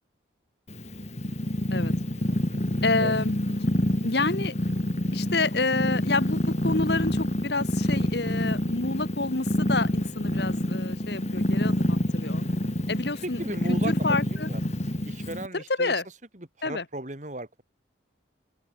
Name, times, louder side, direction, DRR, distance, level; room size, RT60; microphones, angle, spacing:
Purr, 0.7-15.5, left 1 dB, 35° left, 2.4 m, -27 dB
voice 1, 2.8-3.4 4.0-4.5 5.1-12.4 12.9-13.4 13.7-14.5 15.5-16.1 16.6-16.9, left 3 dB, 60° left, 1.7 m, -28 dB
voice 2, 13.2-14.6 15.0-15.9 16.3-17.6, right 1 dB, 40° right, 2.8 m, -36 dB
open air
head